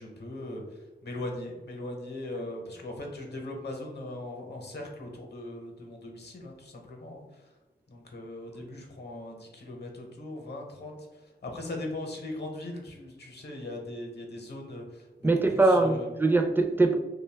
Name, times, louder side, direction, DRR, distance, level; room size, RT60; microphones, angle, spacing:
voice 1, 0.0-7.5 7.9-15.3 15.6-16.1, left 1 dB, 70° left, 0.7 m, -39 dB
voice 2, 15.2-17.0, right 2 dB, 10° right, 0.4 m, -22 dB
2.6 x 2.2 x 3.3 m
wide cardioid pair, 75°, 18 cm